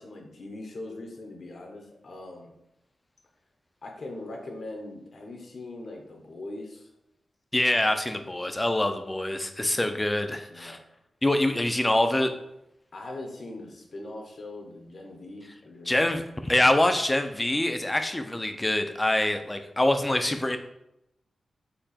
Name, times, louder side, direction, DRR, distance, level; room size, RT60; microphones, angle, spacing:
voice 1, 0.0-2.5 3.8-6.9 9.6-10.0 10.5-10.8 12.9-16.1, left 2 dB, 55° left, 1 dB, 0.9 m, -41 dB
voice 2, 7.5-10.8 11.2-12.3 15.9-20.6, left 1 dB, 15° left, 7 dB, 0.4 m, -25 dB
4.4 x 2.8 x 4.2 m, 0.84 s
wide cardioid pair, 135°, 0 cm